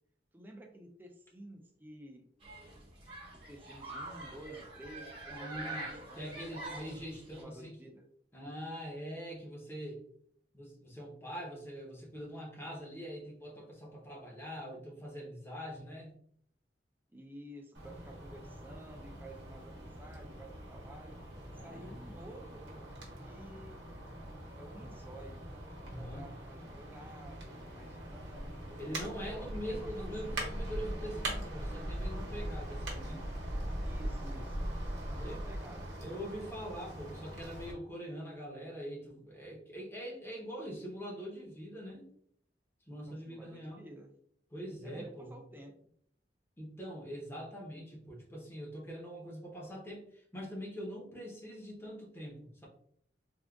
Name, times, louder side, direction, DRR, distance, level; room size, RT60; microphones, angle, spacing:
voice 1, 0.3-2.3 3.3-6.4 6.7-8.1 17.1-21.2 21.6-22.9 23.2-23.8 24.6-25.4 25.9-28.8 29.2-30.4 33.8-35.9 43.1-44.2 44.8-45.7, right 1 dB, 10° right, 2 dB, 0.5 m, -52 dB
Human group actions, 2.4-7.4, right 2 dB, 35° right, 1.0 m, -45 dB
voice 2, 5.3-7.9 8.3-10.0 10.5-16.2 21.5-22.0 25.8-26.3 28.8-33.3 35.2-35.4 36.0-42.1 42.9-43.9 44.5-45.3 46.6-52.7, equal, 15° left, -2 dB, 0.8 m, -43 dB
sound 1, 17.7-37.7, right 1 dB, 70° right, 1.0 m, -41 dB
3.6 x 2.4 x 2.3 m, 0.65 s
head